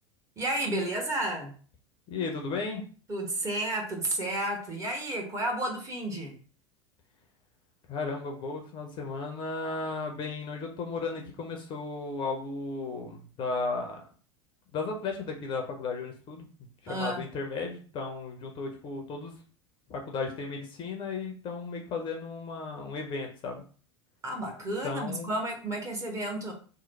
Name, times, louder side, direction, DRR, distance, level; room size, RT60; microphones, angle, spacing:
voice 1, 0.4-1.6 3.1-6.4 16.9-17.2 24.2-26.5, right 1 dB, 20° right, 1 dB, 1.1 m, -32 dB
voice 2, 2.1-2.8 7.9-14.1 14.7-16.5 16.8-19.3 19.9-23.6 24.8-25.3, left 4 dB, 35° left, 2 dB, 0.7 m, -35 dB
3.1 x 2.2 x 4.1 m, 0.40 s
figure-of-eight pair, 80°, 15 cm